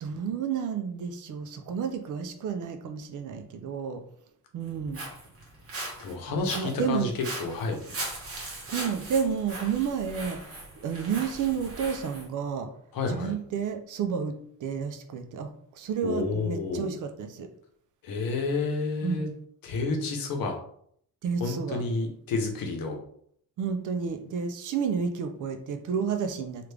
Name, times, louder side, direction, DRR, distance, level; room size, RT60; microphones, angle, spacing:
voice 1, 0.0-4.0 4.5-5.0 6.3-7.1 8.7-12.7 13.1-17.5 19.0-19.2 21.2-21.8 23.6-26.7, right 6 dB, 55° right, 7 dB, 0.5 m, -31 dB
Walk footsteps, 4.6-12.3, right 2 dB, 35° right, 1.2 m, -39 dB
voice 2, 6.0-7.1 7.4-7.8 12.9-13.3 16.0-17.0 18.0-19.3 19.6-20.6 21.4-23.0, left 3 dB, 65° left, 3 dB, 0.9 m, -30 dB
3.3 x 2.4 x 3.3 m, 0.65 s
cardioid pair, 130°, 37 cm